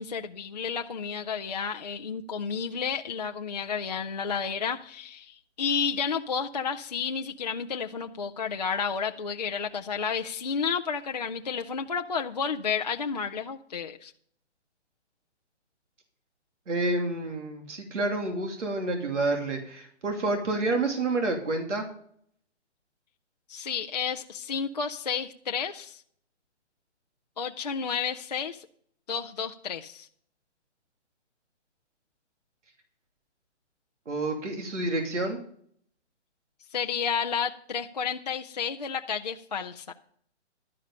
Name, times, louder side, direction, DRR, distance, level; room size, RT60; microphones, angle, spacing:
voice 1, 0.0-14.1 23.5-26.0 27.4-28.7 29.1-30.1 36.7-39.9, left 6 dB, 35° left, 3 dB, 0.4 m, -31 dB
voice 2, 16.7-21.9 34.1-35.4, right 2 dB, 80° right, 3 dB, 2.8 m, -29 dB
11.5 x 10.0 x 5.5 m, 0.64 s
hypercardioid pair, 170°, 36 cm